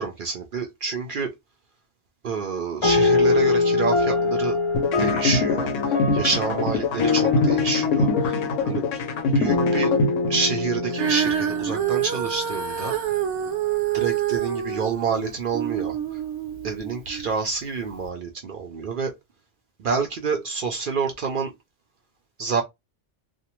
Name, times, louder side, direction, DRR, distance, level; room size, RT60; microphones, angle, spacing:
voice 1, 0.0-1.3 2.2-4.6 5.0-5.7 6.1-8.4 8.6-8.8 9.3-9.9 10.3-12.9 13.9-16.2 16.6-19.1 19.8-21.5 22.4-22.6, right 5 dB, 60° right, 0.6 m, -28 dB
sound 1, 2.8-12.6, left 4 dB, 55° left, 0.3 m, -24 dB
sound 2, 4.7-10.8, left 3 dB, 90° left, 0.9 m, -24 dB
Female singing, 10.9-17.3 18.0-18.1, right 10 dB, 80° right, 1.0 m, -27 dB
2.5 x 2.0 x 2.9 m
omnidirectional pair, 1.3 m